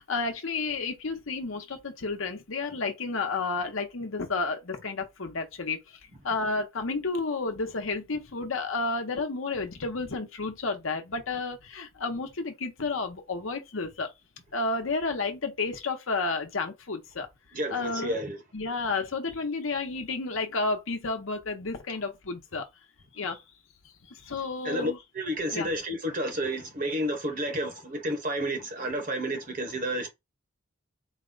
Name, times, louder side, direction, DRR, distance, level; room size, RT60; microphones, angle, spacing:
voice 1, 0.0-5.8 6.2-14.1 14.5-17.3 17.7-18.2 18.5-22.6 23.1-23.4 24.2-25.0 25.5-25.7, left 3 dB, 70° left, 0.9 m, -31 dB
voice 2, 17.5-18.4 24.6-30.1, right 1 dB, 40° right, 1.2 m, -31 dB
4.0 x 2.2 x 3.9 m
head